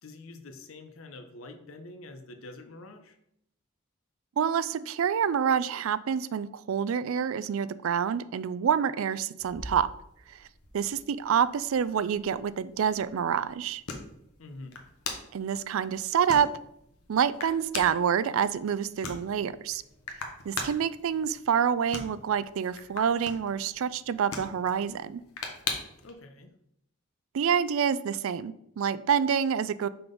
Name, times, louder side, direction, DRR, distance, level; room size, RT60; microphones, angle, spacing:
voice 1, 0.0-3.2 14.4-14.8 26.0-26.5, left 2 dB, 70° left, 7 dB, 0.8 m, -46 dB
voice 2, 4.4-9.9 10.3-10.4 10.7-13.8 15.3-16.5 17.1-19.8 20.5-25.2 27.3-29.9, right 7 dB, 70° right, 16 dB, 0.3 m, -27 dB
sound 1, 9.4-26.1, left 4 dB, 90° left, 1.1 m, -42 dB
5.8 x 3.9 x 5.2 m, 0.76 s
head